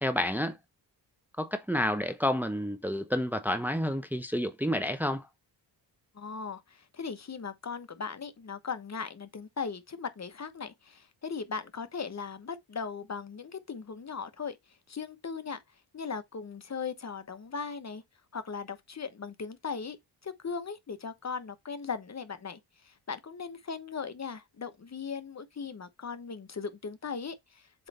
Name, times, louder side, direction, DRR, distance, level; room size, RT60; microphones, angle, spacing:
voice 1, 0.0-0.6 1.4-5.3, left 1 dB, 5° right, 0.7 m, -29 dB
voice 2, 6.1-14.6 14.9-15.6 15.9-18.0 18.3-20.0 20.2-27.9, left 5 dB, 40° left, 1.0 m, -38 dB
7.7 x 3.2 x 4.1 m
cardioid pair, 85°, 43 cm